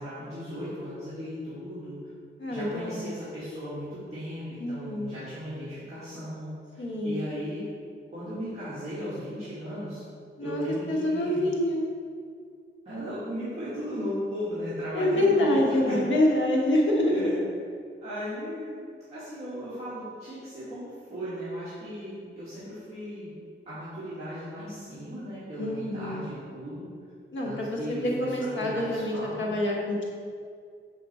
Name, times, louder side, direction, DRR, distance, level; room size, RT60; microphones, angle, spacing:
voice 1, 0.0-2.0 2.5-7.6 8.1-10.0 10.4-11.5 12.9-16.3 17.1-17.4 18.0-18.8 19.1-23.4 23.7-26.8 27.4-29.5, equal, 30° right, -13 dB, 1.7 m, -36 dB
voice 2, 2.4-3.2 4.6-5.1 6.8-7.3 10.4-10.6 10.9-11.9 14.9-17.4 25.6-26.2 27.3-30.2, left 1 dB, 70° left, -2 dB, 1.1 m, -26 dB
7.2 x 4.2 x 4.1 m, 2.2 s
wide cardioid pair, 175°, 21 cm